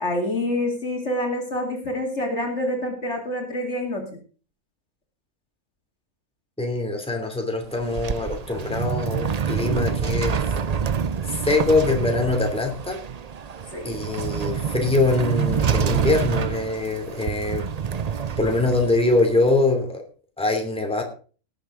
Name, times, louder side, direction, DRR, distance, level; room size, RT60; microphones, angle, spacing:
voice 1, 0.0-4.1 13.7-14.0, left 1 dB, 50° left, 2 dB, 2.9 m, -27 dB
voice 2, 6.6-10.4 11.2-13.0 13.8-17.6 18.4-20.0 20.4-21.0, left 2 dB, 5° left, 2 dB, 2.7 m, -23 dB
sound 1, 7.6-19.5, right 7 dB, 55° right, 0.4 m, -27 dB
18.5 x 7.8 x 3.8 m, 0.38 s
omnidirectional pair, 1.5 m